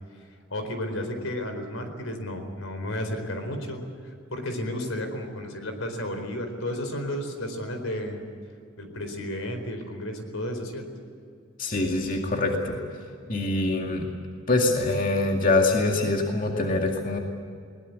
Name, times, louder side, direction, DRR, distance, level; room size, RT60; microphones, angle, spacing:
voice 1, 0.5-8.2 8.8-10.9, left 1 dB, 85° left, 7 dB, 4.3 m, -32 dB
voice 2, 11.6-12.8 13.3-14.1 14.5-17.2, left 2 dB, 40° left, 1 dB, 2.3 m, -24 dB
21.5 x 20.5 x 8.4 m, 2.3 s
head